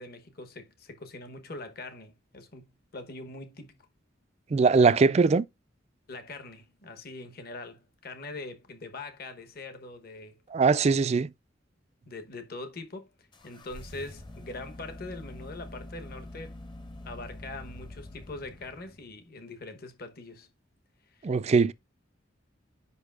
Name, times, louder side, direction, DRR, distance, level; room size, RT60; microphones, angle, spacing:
voice 1, 0.0-3.8 6.1-10.4 12.0-16.6 17.0-20.5 21.1-21.3, left 2 dB, 55° left, 1.0 m, -43 dB
voice 2, 4.5-5.4 10.5-11.3 21.2-21.7, right 4 dB, 35° right, 0.3 m, -21 dB
sound 1, 13.3-19.2, left 1 dB, 25° left, 0.7 m, -45 dB
8.1 x 5.5 x 2.4 m
head